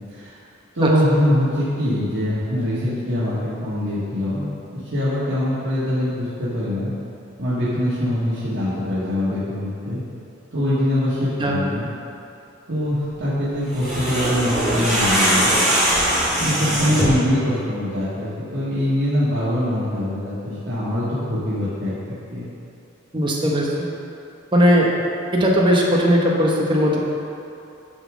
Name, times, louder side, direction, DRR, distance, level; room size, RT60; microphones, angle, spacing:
voice 1, 0.7-6.9 7.4-10.0 10.5-11.9 12.7-15.5 16.4-22.0 22.3-22.4, left 1 dB, 65° right, -12 dB, 1.7 m, -23 dB
sound 1, 13.7-17.3, right 1 dB, ahead, 2.0 m, -21 dB
voice 2, 23.1-23.9 24.5-24.9 25.3-27.0, equal, 25° right, -3 dB, 1.0 m, -18 dB
9.9 x 3.7 x 6.2 m, 2.7 s
head